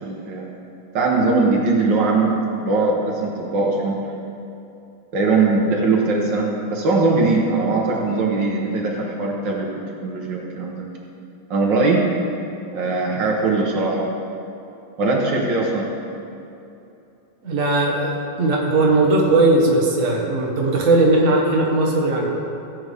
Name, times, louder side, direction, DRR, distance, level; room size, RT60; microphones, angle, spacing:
voice 1, 0.0-0.4 0.9-2.3 2.6-4.0 5.1-9.7 10.0-10.9 11.5-12.0 12.7-14.1 15.0-15.9, right 3 dB, 70° right, -2 dB, 1.8 m, -20 dB
voice 2, 17.4-22.3, right 2 dB, 45° right, -2 dB, 1.7 m, -18 dB
16.5 x 8.0 x 3.5 m, 2.8 s
omnidirectional pair, 2.1 m